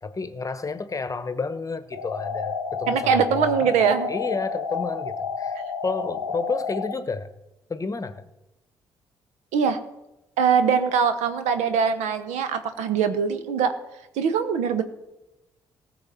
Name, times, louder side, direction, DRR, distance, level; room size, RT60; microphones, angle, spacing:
voice 1, 0.0-7.3 7.7-8.3, left 4 dB, 25° left, 1.1 m, -31 dB
sound 1, 1.9-6.9, left 5 dB, 85° left, 0.5 m, -31 dB
voice 2, 2.9-4.1 9.5-9.8 10.4-13.7 14.2-14.8, right 6 dB, 65° right, 1.0 m, -22 dB
19.0 x 6.6 x 4.3 m
figure-of-eight pair, 45°, 13 cm